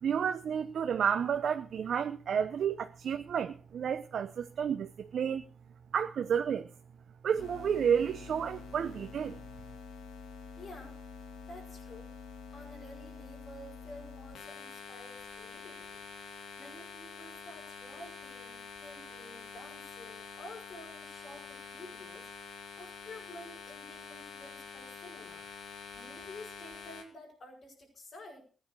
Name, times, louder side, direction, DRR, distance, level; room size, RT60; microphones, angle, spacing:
voice 1, 0.0-5.4 5.9-6.7 7.2-9.4, right 7 dB, 65° right, 0.9 m, -31 dB
sound 1, 7.4-27.0, left 5 dB, 80° left, 2.9 m, -47 dB
voice 2, 10.6-11.0 11.4-12.1 12.5-25.5 25.9-28.4, left 1 dB, 55° left, 7.6 m, -51 dB
15.5 x 9.9 x 6.4 m
supercardioid pair, 50°, 0 cm